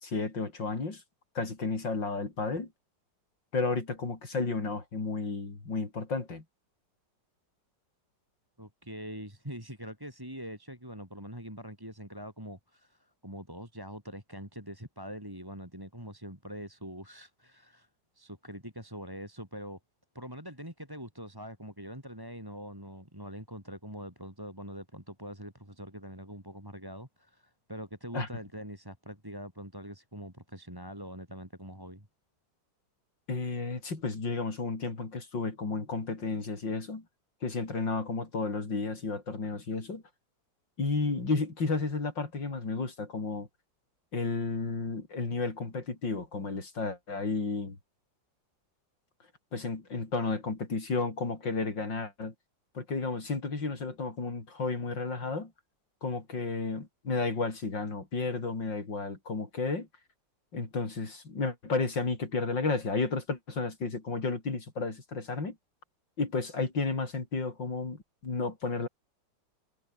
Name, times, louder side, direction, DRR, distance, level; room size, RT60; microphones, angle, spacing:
voice 1, 0.0-1.0 1.4-2.7 3.5-6.4 28.1-28.3 33.3-37.0 37.4-40.0 40.8-43.5 44.1-47.8 49.5-52.3 52.8-55.5 56.0-59.9 60.5-65.6 66.2-68.9, left 3 dB, 75° left, 5.1 m, -32 dB
voice 2, 8.6-17.9 18.1-19.8 20.1-32.1, equal, 10° right, 5.6 m, -43 dB
omnidirectional pair, 2.0 m